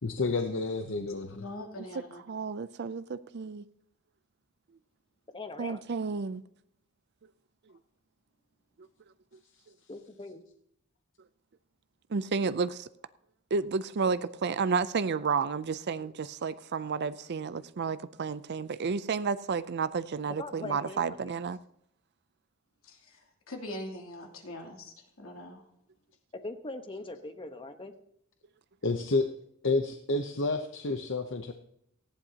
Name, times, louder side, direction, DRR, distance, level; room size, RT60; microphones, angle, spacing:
voice 1, 0.0-1.5 28.8-29.3 29.6-31.5, left 3 dB, 65° left, 0.8 m, -30 dB
voice 2, 1.3-2.2 22.9-25.6, left 1 dB, 85° left, 3.0 m, -42 dB
voice 3, 2.3-3.6 5.6-6.4 12.1-12.9 13.5-21.6, right 5 dB, 55° right, 0.5 m, -31 dB
voice 4, 5.3-5.8 9.9-10.4 20.4-21.3 26.3-27.9, left 2 dB, 25° left, 1.1 m, -41 dB
18.5 x 14.5 x 2.9 m
head